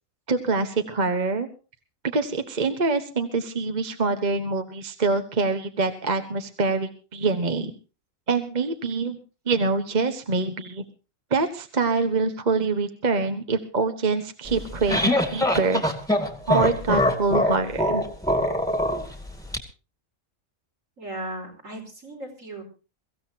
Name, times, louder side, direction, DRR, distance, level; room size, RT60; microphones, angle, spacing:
voice 1, 0.3-1.5 2.1-7.7 8.3-9.2 9.5-10.8 11.3-15.8 16.5-18.0, right 4 dB, 35° right, 7 dB, 1.3 m, -25 dB
sound 1, 14.5-19.6, left 1 dB, 5° left, 2.1 m, -23 dB
voice 2, 21.0-22.6, right 1 dB, 65° right, 2 dB, 4.8 m, -36 dB
23.5 x 15.5 x 2.9 m, 0.34 s
omnidirectional pair, 1.5 m